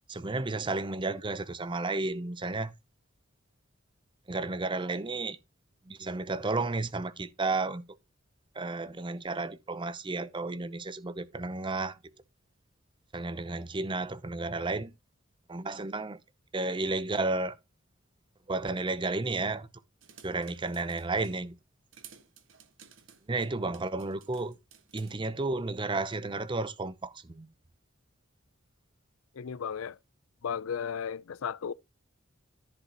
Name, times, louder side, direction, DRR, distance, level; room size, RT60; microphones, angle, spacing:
voice 1, 0.1-2.7 4.3-5.4 5.9-7.8 8.5-12.1 13.1-14.9 15.5-16.2 16.5-17.6 18.5-19.7 20.2-21.6 23.3-24.6 24.9-27.5, right 3 dB, 25° right, 0.6 m, -32 dB
sound 1, 20.0-21.4 21.9-25.2, right 7 dB, 65° right, 1.3 m, -55 dB
voice 2, 29.4-30.0 30.4-31.7, left 7 dB, 85° left, 0.5 m, -34 dB
14.0 x 5.0 x 2.9 m
head